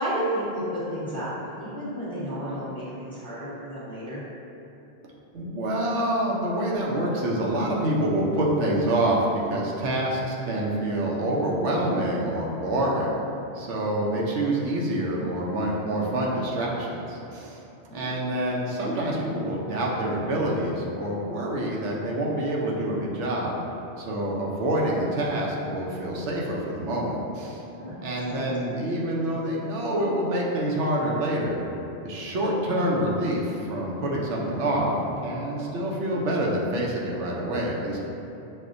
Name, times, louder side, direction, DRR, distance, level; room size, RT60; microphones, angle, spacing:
voice 1, 0.0-4.2 17.9-18.2 27.8-28.5, equal, 5° left, -10 dB, 0.7 m, -32 dB
voice 2, 5.3-13.1 13.5-17.6 17.9-23.5 24.0-27.6 28.0-31.6 32.0-34.9 35.2-38.0, right 1 dB, 80° right, -3 dB, 0.9 m, -26 dB
6.1 x 2.1 x 2.5 m, 2.9 s
omnidirectional pair, 1.2 m